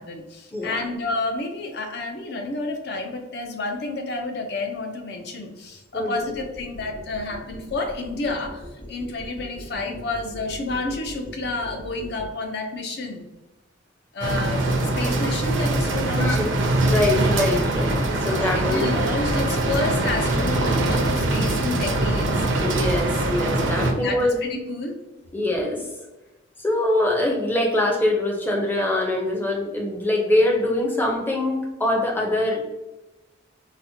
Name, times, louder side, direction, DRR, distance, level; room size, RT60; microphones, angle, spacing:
voice 1, 0.0-13.2 14.1-16.4 18.1-22.5 23.8-25.0, left 3 dB, 55° left, 4 dB, 0.5 m, -30 dB
voice 2, 5.9-6.4 16.1-16.5 16.9-18.9 22.6-24.4 25.3-25.8 26.6-32.6, left 1 dB, 10° left, -1 dB, 0.5 m, -23 dB
sound 1, 6.3-12.3, equal, 80° left, 1.0 m, -40 dB
sound 2, 14.2-23.9, right 2 dB, 65° right, 0.5 m, -23 dB
4.1 x 2.1 x 2.7 m, 1.0 s
head